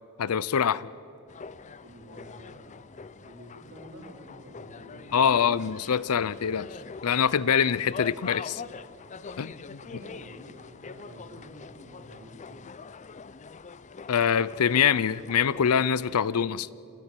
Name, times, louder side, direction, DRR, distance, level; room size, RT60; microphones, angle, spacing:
voice 1, 0.2-0.9 5.1-6.7 7.0-8.6 9.4-9.8 14.1-16.7, left 7 dB, 80° left, 20 dB, 0.5 m, -24 dB
Ambience airport escalator, 1.3-16.2, left 5 dB, 35° left, 0.5 m, -44 dB
voice 2, 1.8-5.3 9.8-12.6, equal, 55° right, 1 dB, 4.1 m, -49 dB
27.0 x 14.0 x 9.1 m, 2.8 s
head